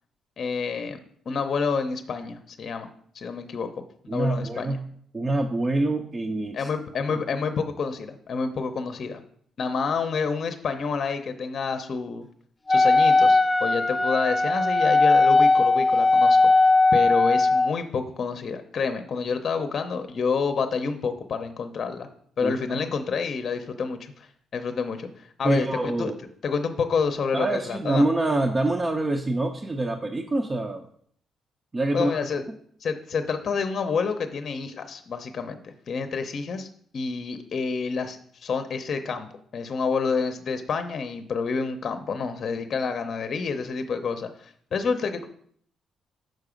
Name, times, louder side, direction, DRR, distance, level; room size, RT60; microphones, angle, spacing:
voice 1, 0.4-1.0 1.3-2.9 3.1-3.7 4.0-4.8 6.5-9.2 9.6-12.3 12.7-16.5 16.9-22.1 22.4-26.1 26.4-28.0 31.9-32.4 32.8-36.7 36.9-45.3, left 5 dB, 50° left, 8 dB, 0.7 m, -28 dB
voice 2, 4.1-4.8 5.1-6.7 7.1-7.2 22.4-22.8 25.4-26.2 27.3-30.8 31.7-32.1, right 2 dB, 25° right, 3 dB, 0.6 m, -25 dB
Wind instrument woodwind instrument, 12.7-17.7, left 3 dB, 15° left, 0.4 m, -19 dB
6.4 x 4.8 x 5.0 m, 0.62 s
cardioid pair, 90°, 0 cm